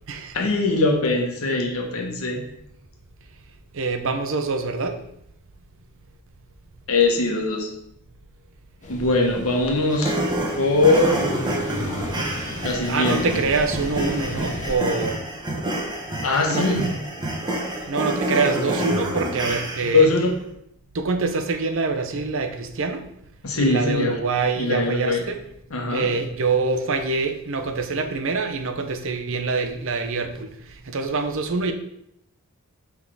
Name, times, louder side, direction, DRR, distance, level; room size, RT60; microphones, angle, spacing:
voice 1, 0.3-2.4 6.9-7.7 8.9-10.1 10.5-11.3 12.6-13.4 16.2-16.9 19.9-20.3 23.4-24.1 24.6-25.2 25.7-26.1, left 3 dB, 75° left, 1 dB, 1.2 m, -21 dB
voice 2, 3.7-5.0 12.9-15.2 16.5-16.8 17.9-20.1 20.9-23.0 23.5-25.4 25.9-31.7, right 4 dB, 65° right, 6 dB, 0.7 m, -25 dB
sound 1, 8.8-14.7, left 1 dB, 35° left, 0.8 m, -35 dB
sound 2, 9.9-20.1, right 1 dB, 20° right, 1.0 m, -28 dB
6.1 x 3.6 x 4.7 m, 0.76 s
head